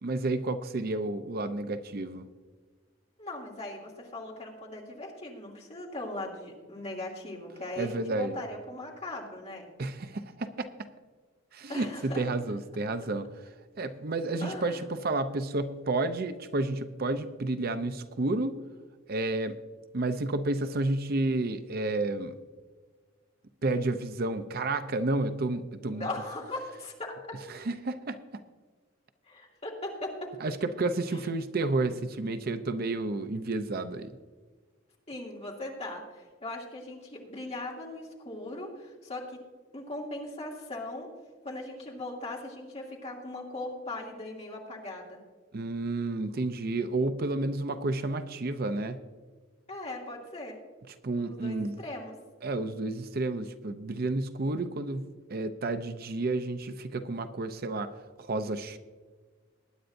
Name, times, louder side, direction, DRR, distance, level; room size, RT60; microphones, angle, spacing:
voice 1, 0.0-2.3 7.8-8.4 9.8-10.7 11.5-13.3 13.8-18.6 19.1-19.6 19.9-22.3 23.6-26.1 27.5-28.2 30.4-34.1 45.5-49.0 51.0-51.8 52.4-57.9 58.2-58.8, right 2 dB, 50° right, 10 dB, 0.6 m, -31 dB
voice 2, 3.2-9.7 11.7-12.2 14.4-14.8 25.9-27.4 29.2-30.3 31.1-31.3 35.1-39.4 39.7-41.1 41.4-45.2 49.7-50.6 51.2-52.1, left 2 dB, 30° left, -2 dB, 2.5 m, -39 dB
20.5 x 10.0 x 2.6 m, 1.4 s
head